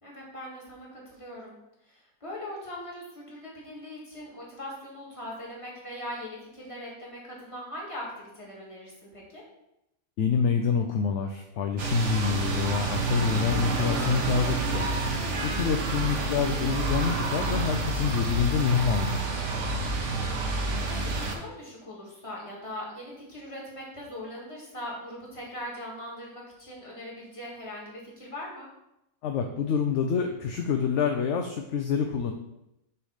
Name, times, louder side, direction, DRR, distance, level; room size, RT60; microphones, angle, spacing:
voice 1, 0.0-1.5 1.9-9.4 15.1-15.8 20.6-28.7, left 1 dB, 20° left, -4 dB, 1.9 m, -41 dB
voice 2, 10.2-19.7 29.2-32.3, left 6 dB, 65° left, 5 dB, 0.8 m, -27 dB
sound 1, 11.8-21.3, right 3 dB, 60° right, 1.2 m, -29 dB
6.9 x 3.3 x 5.6 m, 0.87 s
omnidirectional pair, 1.5 m